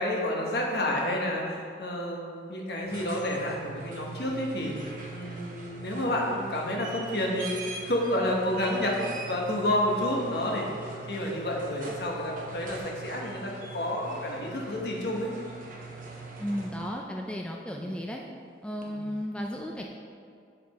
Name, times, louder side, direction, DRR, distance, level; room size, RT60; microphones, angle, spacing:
voice 1, 0.0-4.8 5.1-10.7 11.1-15.3 17.8-18.0 18.9-19.1, left 1 dB, 65° left, -2 dB, 1.3 m, -30 dB
sound 1, 2.7-17.1 18.8-18.9, right 3 dB, 45° right, 1.0 m, -42 dB
voice 2, 16.4-18.2 18.6-19.8, equal, 5° left, 0 dB, 0.4 m, -34 dB
7.0 x 6.9 x 4.3 m, 2.2 s
head